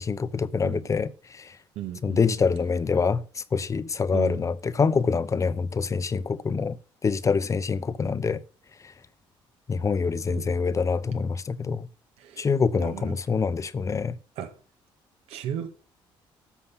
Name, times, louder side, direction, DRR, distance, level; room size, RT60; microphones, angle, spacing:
voice 1, 0.0-1.6 2.0-6.8 7.0-8.4 9.7-11.9 12.4-14.2, left 5 dB, 30° left, 0.9 m, -25 dB
voice 2, 1.8-2.3 4.1-4.4 10.3-10.5 12.2-12.5 12.8-13.2 14.4-14.6 15.3-15.7, right 10 dB, 85° right, 2.0 m, -35 dB
13.0 x 7.3 x 5.7 m
cardioid pair, 105°, 10 cm